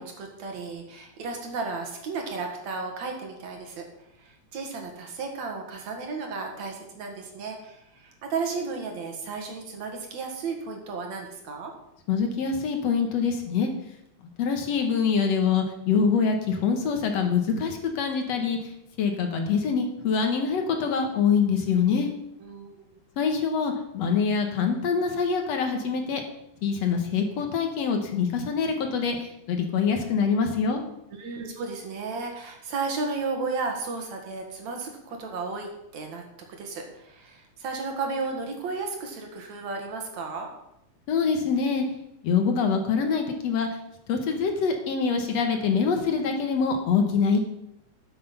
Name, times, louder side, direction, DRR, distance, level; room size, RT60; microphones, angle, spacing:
voice 1, 0.0-3.8 4.2-11.7 22.4-22.8 31.2-36.2 36.5-40.5, right 4 dB, 70° right, 3 dB, 3.0 m, -34 dB
voice 2, 12.1-13.7 14.4-18.7 19.0-22.1 23.2-26.2 26.6-30.8 41.1-41.9 42.2-43.7 44.1-47.4, left 5 dB, 65° left, 4 dB, 2.3 m, -25 dB
12.5 x 8.0 x 5.5 m, 0.81 s
omnidirectional pair, 3.4 m